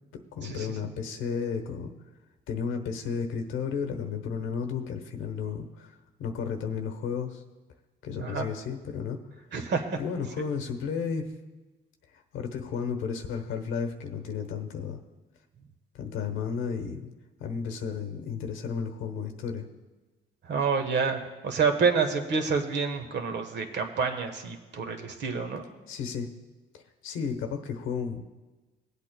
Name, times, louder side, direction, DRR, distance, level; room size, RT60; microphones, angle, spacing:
voice 1, 0.3-1.9 2.5-5.9 6.2-7.4 8.0-9.2 9.9-11.3 12.1-15.0 15.9-17.1 17.4-19.6 25.9-26.3 26.7-28.2, left 6 dB, 90° left, 6 dB, 1.0 m, -33 dB
voice 2, 9.5-10.0 20.5-25.6, right 5 dB, 60° right, 6 dB, 1.2 m, -28 dB
20.5 x 8.3 x 2.2 m, 1.2 s
cardioid pair, 90°, 20 cm